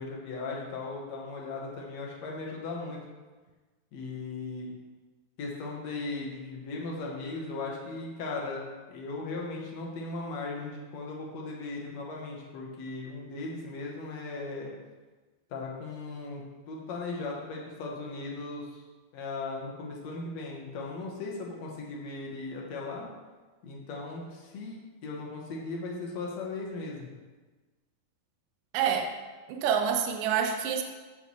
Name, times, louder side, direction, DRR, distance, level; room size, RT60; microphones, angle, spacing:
voice 1, 0.0-3.0 3.9-4.8 5.4-14.7 15.5-18.8 19.1-23.1 23.6-27.1, left 3 dB, 70° left, -2 dB, 1.7 m, -37 dB
voice 2, 28.7-29.1 29.5-30.8, right 8 dB, 85° right, 4 dB, 1.9 m, -27 dB
14.5 x 5.6 x 3.1 m, 1.3 s
omnidirectional pair, 4.7 m